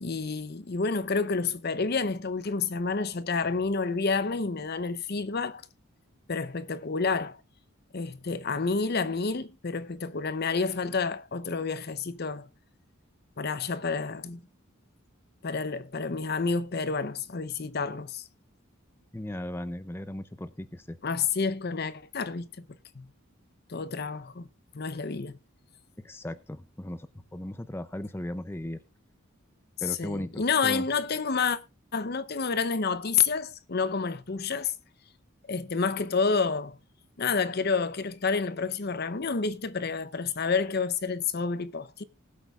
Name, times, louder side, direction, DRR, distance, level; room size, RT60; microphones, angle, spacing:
voice 1, 0.0-5.6 6.3-7.4 7.9-12.5 13.4-14.4 15.4-18.2 21.0-22.6 22.9-23.1 23.7-24.5 24.7-25.4 30.0-31.6 31.9-34.7 35.5-36.8 37.2-42.0, left 4 dB, 50° left, 0.7 m, -29 dB
voice 2, 19.1-21.0 26.0-28.8 29.8-30.9, left 1 dB, 10° left, 0.5 m, -37 dB
19.5 x 8.2 x 2.4 m
head